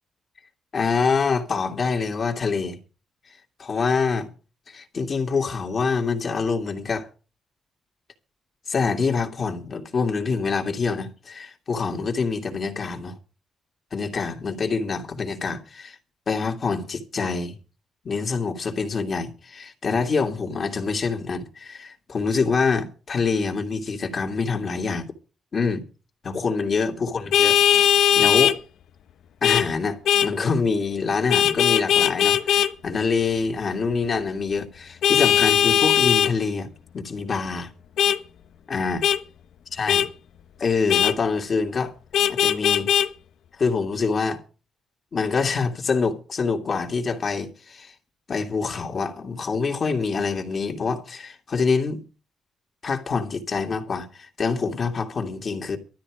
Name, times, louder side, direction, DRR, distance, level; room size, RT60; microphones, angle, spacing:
voice 1, 0.7-2.8 3.6-4.3 4.7-7.1 8.7-13.2 13.9-16.0 16.3-17.6 18.0-25.1 25.5-25.9 26.2-27.8 28.1-28.6 29.4-36.7 36.9-37.7 38.7-39.0 39.8-40.1 40.6-41.9 42.3-42.9 43.6-44.4 45.1-47.9 48.3-52.0 52.8-55.8, left 4 dB, 45° left, 2.7 m, -25 dB
Vehicle horn car horn honking, 27.3-28.6 29.4-29.7 30.1-30.3 31.3-32.7 35.0-36.3 38.0-38.2 39.0-39.2 39.9-40.1 40.9-41.1 42.1-43.1, left 10 dB, 80° left, 1.0 m, -19 dB
16.0 x 13.0 x 5.1 m
cardioid pair, 90°, 0 cm